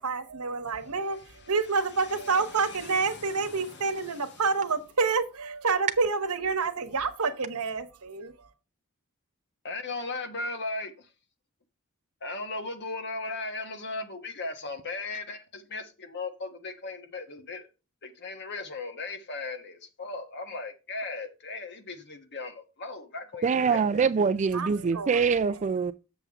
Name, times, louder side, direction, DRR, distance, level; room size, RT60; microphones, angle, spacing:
voice 1, 0.0-1.2 1.5-8.3 24.5-25.2, right 4 dB, 80° right, 1.1 m, -28 dB
voice 2, 0.8-4.6 9.6-11.1 12.2-17.7 18.0-24.1, left 3 dB, 50° left, 1.4 m, -38 dB
voice 3, 23.4-25.9, right 5 dB, 35° right, 0.3 m, -24 dB
7.0 x 7.0 x 3.6 m
head